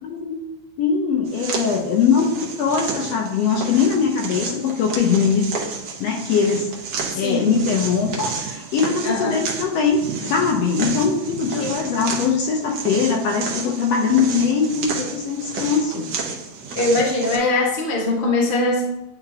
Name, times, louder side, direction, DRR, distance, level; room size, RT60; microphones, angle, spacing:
voice 1, 0.0-0.4 0.8-5.6 6.0-6.7 7.1-16.1, left 6 dB, 75° left, 1 dB, 1.7 m, -21 dB
sound 1, 1.2-17.4, right 5 dB, 70° right, 1.0 m, -31 dB
voice 2, 7.1-7.5 9.0-9.4 11.6-11.8 16.7-18.8, left 2 dB, 30° left, -3 dB, 1.0 m, -21 dB
9.9 x 3.9 x 2.8 m, 0.92 s
omnidirectional pair, 3.3 m